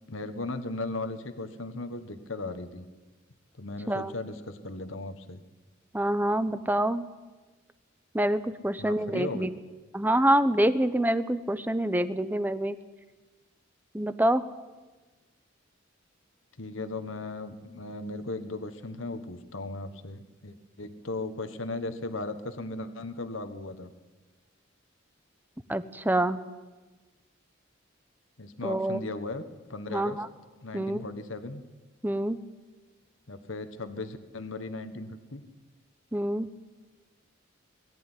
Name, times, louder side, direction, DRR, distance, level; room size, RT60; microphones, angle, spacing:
voice 1, 0.1-2.9 3.6-5.4 8.8-9.5 16.6-23.9 28.4-29.4 29.7-30.2 30.6-31.6 33.3-35.4, left 2 dB, 75° left, 9 dB, 1.4 m, -37 dB
voice 2, 5.9-7.1 8.1-9.5 9.9-12.8 13.9-14.4 25.7-26.4 28.6-29.0 29.9-30.3 30.7-31.0 32.0-32.4 36.1-36.5, right 1 dB, 10° right, 12 dB, 0.8 m, -26 dB
21.5 x 14.0 x 9.9 m, 1.2 s
head